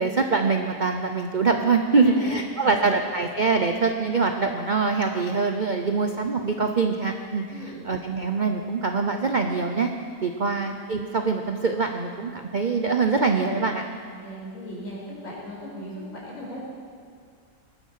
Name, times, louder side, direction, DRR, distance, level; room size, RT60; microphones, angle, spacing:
voice 1, 0.0-9.9 10.2-13.8, right 4 dB, 45° right, 4 dB, 0.6 m, -24 dB
voice 2, 1.9-2.3 2.6-3.0 5.8-6.0 7.5-7.8 10.4-10.6 14.0-16.6, equal, 45° left, -6 dB, 5.9 m, -38 dB
19.0 x 13.0 x 5.8 m, 2.1 s
omnidirectional pair, 1.9 m